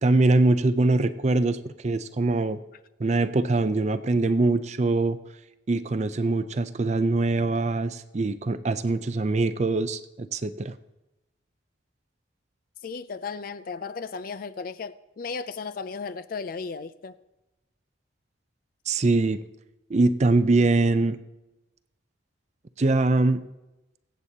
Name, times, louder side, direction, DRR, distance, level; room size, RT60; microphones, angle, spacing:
voice 1, 0.0-2.6 3.0-5.2 5.7-10.7 18.9-19.4 19.9-21.2 22.8-23.4, right 2 dB, 35° right, 0.4 m, -23 dB
voice 2, 12.8-17.2, left 5 dB, 45° left, 0.4 m, -35 dB
23.5 x 8.1 x 2.8 m
head